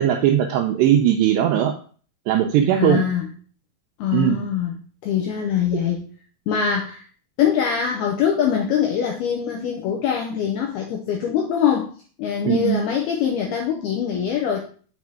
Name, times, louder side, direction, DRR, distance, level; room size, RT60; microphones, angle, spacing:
voice 1, 0.0-1.7 2.3-3.0 4.1-4.4 12.5-12.8, right 11 dB, 90° right, 2 dB, 2.4 m, -19 dB
voice 2, 2.7-3.3 4.0-4.7 5.0-6.0 6.5-7.0 7.4-11.9 12.2-14.6, left 8 dB, 85° left, 1 dB, 2.2 m, -23 dB
7.1 x 4.4 x 4.8 m, 0.42 s
omnidirectional pair, 5.6 m